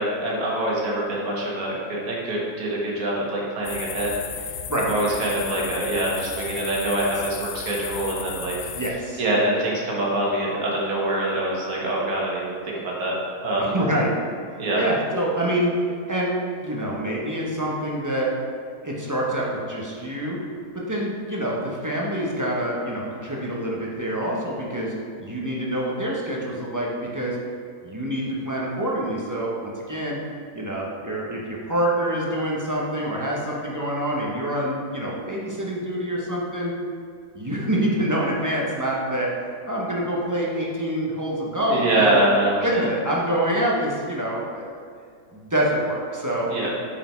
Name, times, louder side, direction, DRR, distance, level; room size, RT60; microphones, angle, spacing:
voice 1, 0.0-4.6 4.9-8.7 9.2-13.2 13.4-13.7 14.6-14.8 41.7-42.9 46.5-46.7, right 1 dB, 65° right, -4 dB, 1.7 m, -25 dB
sound 1, 3.6-8.9, left 8 dB, 75° left, 1.0 m, -34 dB
voice 2, 8.7-9.2 13.6-14.1 14.5-15.7 16.1-16.4 16.6-18.3 18.8-20.4 20.7-27.4 27.8-30.2 30.5-36.7 37.3-39.3 39.7-42.2 42.6-44.7 45.3-46.7, right 1 dB, 20° right, -4 dB, 0.6 m, -26 dB
5.6 x 5.1 x 4.4 m, 2.2 s
omnidirectional pair, 1.7 m